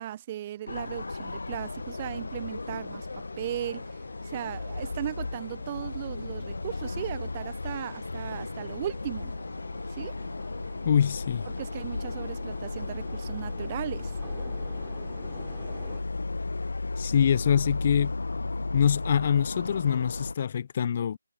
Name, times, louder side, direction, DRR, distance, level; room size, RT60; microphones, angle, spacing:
voice 1, 0.0-3.1 3.4-3.9 4.2-9.3 9.9-10.1 11.5-14.1, right 12 dB, 30° right, 0.6 m, -37 dB
sound 1, 0.7-20.3, left 3 dB, 70° left, 1.1 m, -35 dB
sound 2, 1.7-16.0, right 9 dB, 10° right, 7.5 m, -55 dB
voice 2, 10.8-11.5 17.0-18.1 18.7-21.2, left 8 dB, 40° left, 0.6 m, -24 dB
figure-of-eight pair, 150°, 0 cm